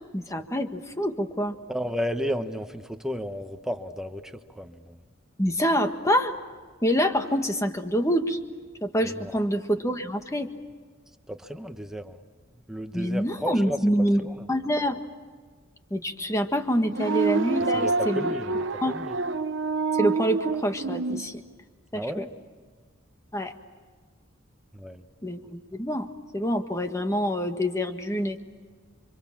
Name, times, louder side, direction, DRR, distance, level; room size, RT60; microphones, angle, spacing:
voice 1, 0.1-1.6 5.4-6.4 6.8-8.4 8.8-10.5 12.9-15.0 15.9-18.3 18.8-19.0 19.9-21.4 21.9-22.2 23.3-23.5 25.2-26.1 26.3-28.4, equal, 15° left, 6 dB, 1.6 m, -26 dB
voice 2, 1.7-5.0 9.0-9.3 11.3-12.2 12.7-13.8 14.2-14.5 17.7-19.1 21.9-22.3 24.7-25.1, equal, 5° right, 6 dB, 1.2 m, -33 dB
sound 1, 16.9-21.2, right 3 dB, 60° right, 0.8 m, -27 dB
29.5 x 25.5 x 7.4 m, 1.5 s
head